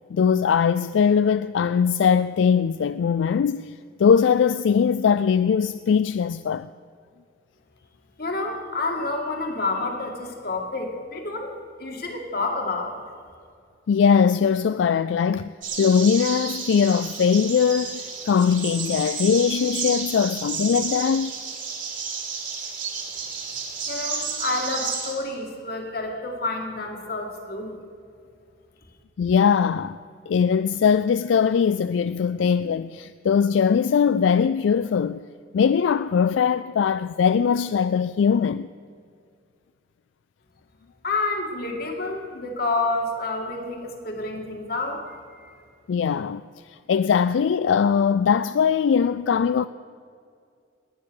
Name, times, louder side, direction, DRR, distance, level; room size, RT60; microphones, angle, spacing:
voice 1, 0.1-3.7 4.0-6.7 13.9-21.3 29.2-30.0 30.3-35.2 35.5-38.7 45.9-46.4 46.7-49.7, left 6 dB, 85° left, 0.3 m, -21 dB
voice 2, 8.2-11.5 11.8-13.0 23.9-27.8 41.0-45.6, left 2 dB, 55° left, 2.4 m, -29 dB
sound 1, 15.6-25.1, right 5 dB, 45° right, 2.7 m, -32 dB
19.5 x 9.6 x 6.4 m
head